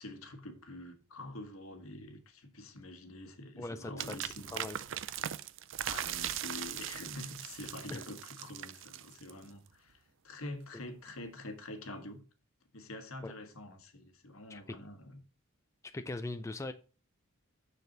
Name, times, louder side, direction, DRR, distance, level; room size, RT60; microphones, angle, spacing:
voice 1, 0.0-4.6 5.8-12.2 12.7-15.2, left 2 dB, 80° left, 1.4 m, -46 dB
voice 2, 3.6-4.8 7.9-8.0 13.2-13.3 14.5-14.8 15.9-16.7, left 2 dB, 15° left, 0.4 m, -41 dB
sound 1, 4.0-9.5, right 11 dB, 60° right, 0.4 m, -40 dB
6.8 x 6.6 x 4.0 m
head